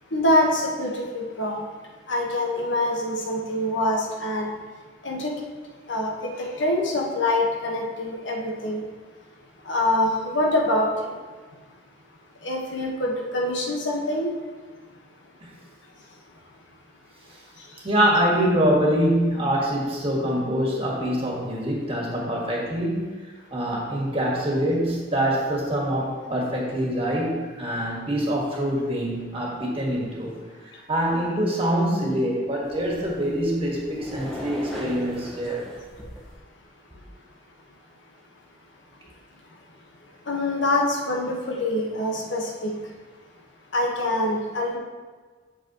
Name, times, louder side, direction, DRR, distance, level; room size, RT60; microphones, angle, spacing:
voice 1, 0.1-1.7 2.1-4.5 5.0-5.4 5.9-8.9 9.6-11.2 11.7-11.8 12.4-14.3 15.8-16.3 17.5-17.9 30.5-30.8 36.0-36.1 39.4-39.8 40.2-42.9 43.3-43.4 43.7-44.8, left 1 dB, 85° left, -1 dB, 1.3 m, -25 dB
voice 2, 17.8-23.1 23.5-30.4 30.9-35.7, equal, 30° right, -3 dB, 1.7 m, -24 dB
sound 1, 32.6-36.4, left 1 dB, 5° left, 1.3 m, -39 dB
8.3 x 6.9 x 3.0 m, 1.4 s
head